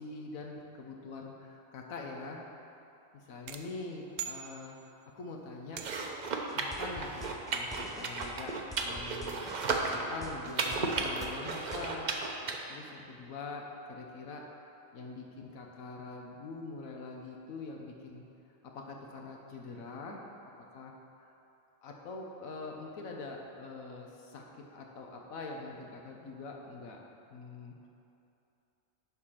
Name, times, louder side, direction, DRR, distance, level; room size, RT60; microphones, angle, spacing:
voice 1, 0.0-2.5 3.1-4.8 5.2-5.8 6.5-8.6 8.8-9.4 9.9-12.1 12.7-14.5 14.9-18.2 18.6-20.3 20.7-21.3 21.8-27.0 27.3-27.9, left 3 dB, 85° left, 1 dB, 1.3 m, -44 dB
sound 1, 3.5-5.1 5.8-6.3, right 9 dB, 75° right, 0.9 m, -44 dB
sound 2, 5.7-12.6, right 3 dB, 45° right, 0.6 m, -35 dB
sound 3, 6.5-11.9, left 1 dB, 5° left, 0.3 m, -46 dB
11.0 x 4.3 x 5.7 m, 2.8 s
omnidirectional pair, 1.4 m